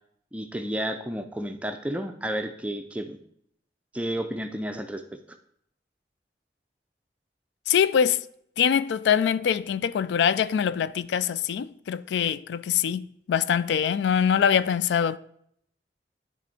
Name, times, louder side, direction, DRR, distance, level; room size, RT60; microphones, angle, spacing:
voice 1, 0.3-3.2 3.9-5.0, right 1 dB, 5° right, 0.4 m, -31 dB
voice 2, 7.7-8.2 8.6-15.2, left 8 dB, 80° left, 0.3 m, -24 dB
10.0 x 3.5 x 4.3 m
head